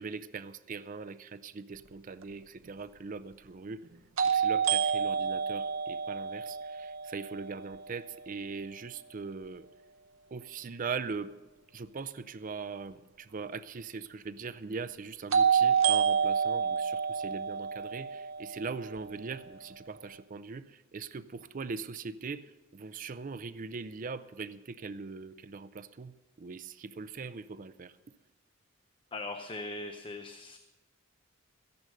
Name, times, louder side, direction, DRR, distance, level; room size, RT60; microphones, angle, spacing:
voice 1, 0.0-3.9 4.2-9.7 10.3-11.3 11.7-28.0, right 4 dB, 40° right, 14 dB, 0.4 m, -41 dB
sound 1, 2.2-2.3 4.2-8.1 15.3-19.3, right 7 dB, 75° right, 0.7 m, -29 dB
voice 2, 29.1-30.6, left 2 dB, 25° left, 6 dB, 0.7 m, -40 dB
14.0 x 11.0 x 6.3 m, 1.2 s
head